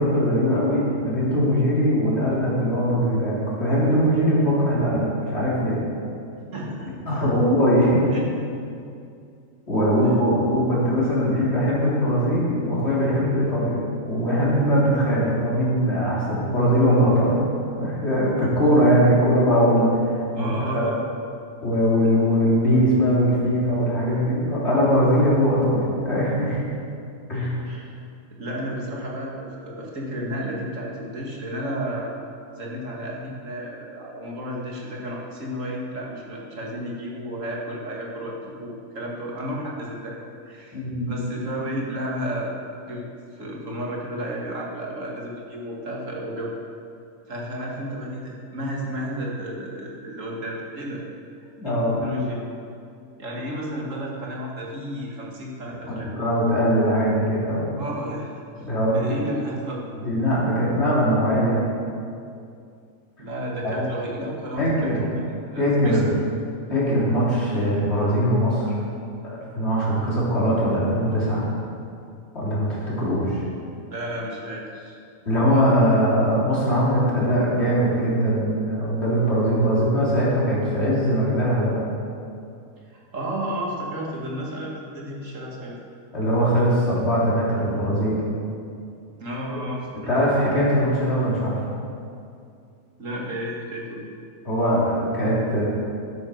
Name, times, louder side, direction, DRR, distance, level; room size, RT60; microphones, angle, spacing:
voice 1, 0.0-5.8 7.1-8.0 9.7-17.4 17.8-20.8 21.6-26.6 27.3-27.6 40.7-41.1 51.6-52.0 55.9-57.8 58.6-59.0 60.0-61.6 63.6-63.8 64.6-65.0 65.6-66.1 66.7-68.8 69.2-71.4 72.3-73.4 75.3-81.8 86.1-88.2 89.5-89.6 90.1-91.6 94.5-95.6, equal, 50° left, -7 dB, 3.9 m, -21 dB
voice 2, 6.5-7.3 8.1-8.2 20.4-20.9 27.7-27.9 28.3-32.1 32.6-40.2 40.5-42.6 42.9-46.6 47.3-51.0 51.6-52.4 53.2-56.1 57.8-59.9 63.2-66.2 73.9-75.0 82.9-85.8 89.2-90.1 93.0-94.1, equal, 60° right, -3 dB, 2.4 m, -32 dB
11.5 x 9.5 x 6.5 m, 2.4 s
omnidirectional pair, 1.5 m